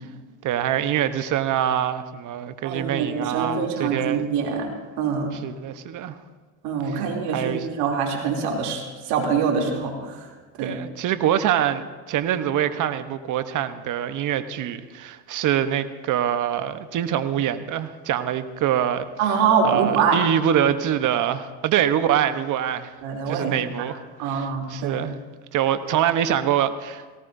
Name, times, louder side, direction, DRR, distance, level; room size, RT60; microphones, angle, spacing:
voice 1, 0.4-4.2 5.3-6.2 6.8-7.0 7.3-7.7 10.6-19.1 19.6-22.9 23.3-25.1 25.5-27.0, right 10 dB, 45° right, 11 dB, 1.1 m, -24 dB
voice 2, 2.6-4.7 5.0-5.3 6.6-10.3 10.6-10.7 19.2-20.2 23.0-23.9 24.2-25.0, right 6 dB, 65° right, 0 dB, 3.1 m, -24 dB
18.0 x 18.0 x 2.7 m, 1.4 s
supercardioid pair, 95°, 41 cm